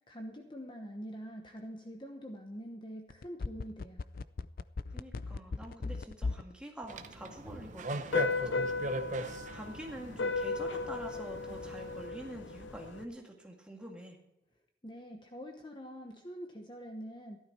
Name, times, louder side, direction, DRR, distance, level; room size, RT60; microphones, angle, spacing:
voice 1, 0.1-4.0 14.8-17.4, equal, 25° left, 3 dB, 1.0 m, -45 dB
sound 1, 3.1-6.5 6.8-6.9, left 3 dB, 50° left, 0.4 m, -36 dB
voice 2, 4.9-8.4 9.5-14.2, right 1 dB, 5° right, 0 dB, 1.9 m, -46 dB
sound 2, 6.9-12.1, right 2 dB, 40° right, 0.8 m, -40 dB
sound 3, 8.1-13.0, left 3 dB, 80° left, 0.8 m, -35 dB
14.0 x 12.0 x 4.4 m, 0.91 s
head